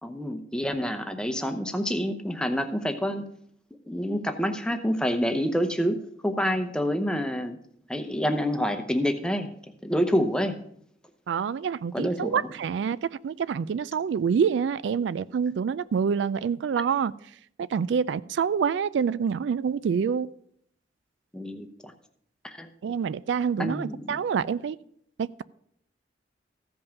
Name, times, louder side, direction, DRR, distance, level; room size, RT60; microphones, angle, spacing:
voice 1, 0.0-3.3 3.9-6.0 6.2-7.6 7.9-9.5 9.8-10.5 11.9-12.4 21.3-21.9 22.4-22.7 23.6-24.2, equal, 5° left, 0.7 m, -27 dB
voice 2, 11.3-17.1 17.6-20.3 22.8-24.8 25.2-25.5, right 6 dB, 80° right, 0.3 m, -27 dB
14.5 x 5.4 x 5.8 m
head